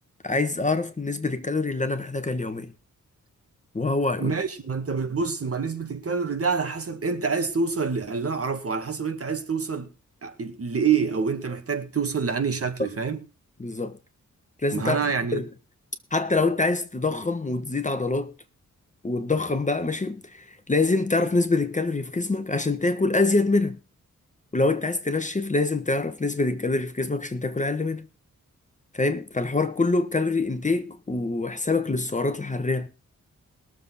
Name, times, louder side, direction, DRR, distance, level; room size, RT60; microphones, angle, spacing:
voice 1, 0.2-2.7 3.7-4.3 12.8-12.9 13.6-14.0 14.6-15.4 16.1-18.3 19.0-23.8 24.5-28.1 28.9-32.9, left 3 dB, 25° left, 1.3 m, -25 dB
voice 2, 4.2-9.9 10.2-13.2 14.7-15.5, right 5 dB, 50° right, 1.8 m, -27 dB
21.0 x 7.3 x 4.1 m
wide cardioid pair, 130°, 31 cm